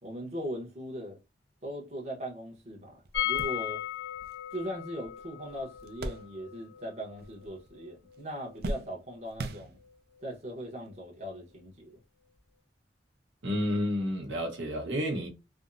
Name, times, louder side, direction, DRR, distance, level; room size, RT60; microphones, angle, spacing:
voice 1, 0.0-1.2 1.6-3.8 4.5-9.8 10.2-12.0, equal, 35° right, 0.8 m, -39 dB
sound 1, 2.5-2.6 3.0-6.8 7.1-7.8 8.1-10.2 10.9-11.0 12.3-12.5, right 2 dB, 55° right, 0.5 m, -41 dB
sound 2, 3.1-8.9 9.2-9.3 9.5-9.6, left 13 dB, 75° left, 0.8 m, -37 dB
voice 2, 13.4-15.3, equal, 90° right, 1.0 m, -30 dB
3.4 x 2.0 x 2.5 m
head